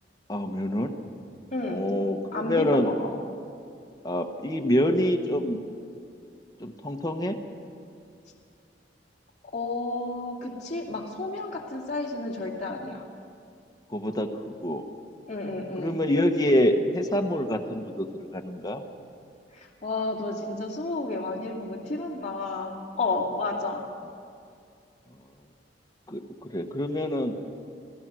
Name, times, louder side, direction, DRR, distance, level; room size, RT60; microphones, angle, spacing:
voice 1, 0.3-0.9 1.7-2.9 4.0-5.6 6.6-7.4 13.9-14.8 15.8-18.1 18.3-18.8 26.1-26.2 26.5-27.3, left 1 dB, 20° left, 4 dB, 1.2 m, -26 dB
voice 2, 1.5-1.8 2.3-3.1 9.5-13.0 15.3-16.0 19.5-22.7 23.0-23.8, left 2 dB, 40° left, -3 dB, 2.5 m, -31 dB
28.5 x 16.0 x 6.2 m, 2.4 s
head